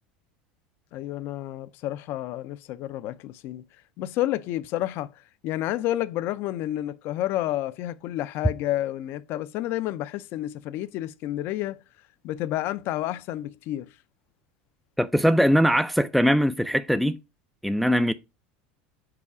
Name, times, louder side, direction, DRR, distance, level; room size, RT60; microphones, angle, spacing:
voice 1, 0.9-3.6 4.0-5.1 5.4-11.8 12.2-13.9, left 14 dB, 55° left, 0.5 m, -30 dB
voice 2, 15.0-17.2 17.6-18.1, equal, ahead, 0.3 m, -21 dB
4.8 x 4.8 x 4.7 m
supercardioid pair, 105°, 5 cm